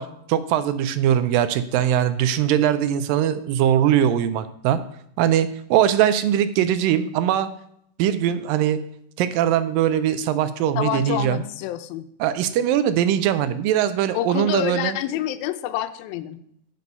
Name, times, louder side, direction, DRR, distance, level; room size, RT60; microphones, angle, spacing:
voice 1, 0.0-4.8 5.2-7.5 8.0-8.8 9.2-11.4 12.2-15.0, right 10 dB, 80° right, 12 dB, 2.2 m, -21 dB
voice 2, 10.8-12.0 14.1-16.4, left 12 dB, 85° left, 11 dB, 2.4 m, -27 dB
8.4 x 8.3 x 5.4 m, 0.71 s
omnidirectional pair, 4.2 m